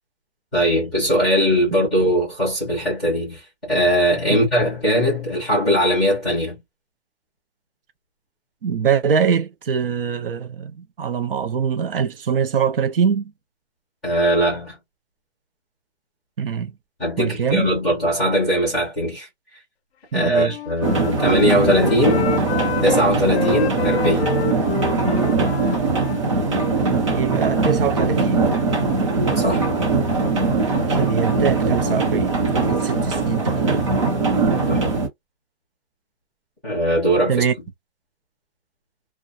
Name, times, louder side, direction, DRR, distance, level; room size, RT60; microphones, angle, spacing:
voice 1, 0.5-6.6 14.0-14.8 17.0-19.3 20.1-22.3 22.8-24.3 29.4-29.6 34.7-34.8 36.6-37.5, equal, ahead, 0.5 m, -20 dB
voice 2, 8.6-13.3 16.4-16.7 17.2-17.7 20.1-20.6 27.1-28.4 30.9-34.1 37.3-37.5, right 7 dB, 55° right, 0.6 m, -23 dB
Wind instrument woodwind instrument, 20.3-23.0 23.3-27.0, left 9 dB, 70° left, 0.6 m, -29 dB
sound 1, 20.8-35.1, right 3 dB, 30° right, 0.8 m, -21 dB
2.4 x 2.2 x 2.6 m
hypercardioid pair, 180°, 33 cm